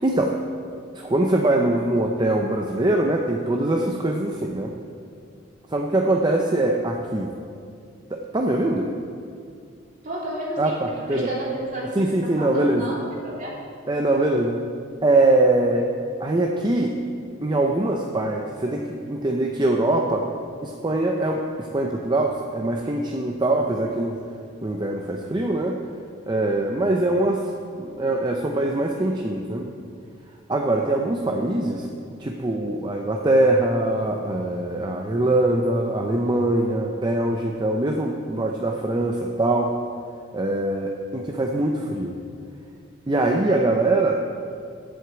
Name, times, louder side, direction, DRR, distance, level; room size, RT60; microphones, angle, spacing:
voice 1, 0.0-0.4 0.9-4.7 5.7-7.3 8.1-8.9 10.6-11.3 12.0-12.9 13.9-14.6 15.0-15.9 16.2-17.0 17.4-20.3 20.6-24.2 24.6-25.8 26.3-29.7 30.5-31.9 32.2-39.7 40.3-42.2 43.1-44.2, right 2 dB, 25° right, 1 dB, 0.6 m, -22 dB
voice 2, 10.0-10.8 11.1-11.9 12.4-13.5, right 1 dB, 45° right, -6 dB, 3.3 m, -31 dB
7.9 x 7.9 x 8.1 m, 2.3 s
head